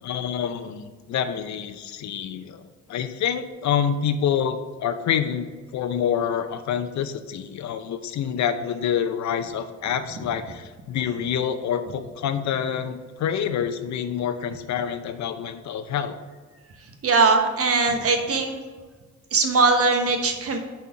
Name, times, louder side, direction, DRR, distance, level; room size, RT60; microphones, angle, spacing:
voice 1, 0.0-2.6 2.9-16.2, left 8 dB, 65° left, 10 dB, 0.6 m, -27 dB
voice 2, 17.0-18.6 19.3-20.6, right 4 dB, 50° right, 4 dB, 1.1 m, -20 dB
5.6 x 4.3 x 6.2 m, 1.4 s
cardioid pair, 90°, 30 cm